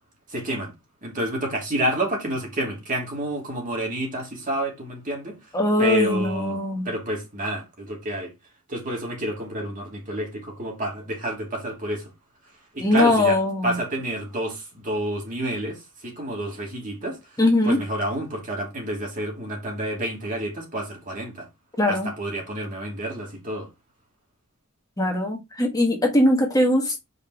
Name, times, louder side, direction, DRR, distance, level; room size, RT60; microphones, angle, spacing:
voice 1, 0.3-0.7 1.0-5.4 5.8-8.3 8.7-12.1 12.7-17.2 17.6-21.5 21.9-23.7, right 1 dB, 40° right, 2.8 m, -29 dB
voice 2, 5.5-6.9 12.8-13.8 17.4-17.8 21.8-22.1 25.0-27.0, left 1 dB, 15° left, 1.5 m, -21 dB
5.3 x 4.6 x 4.5 m
head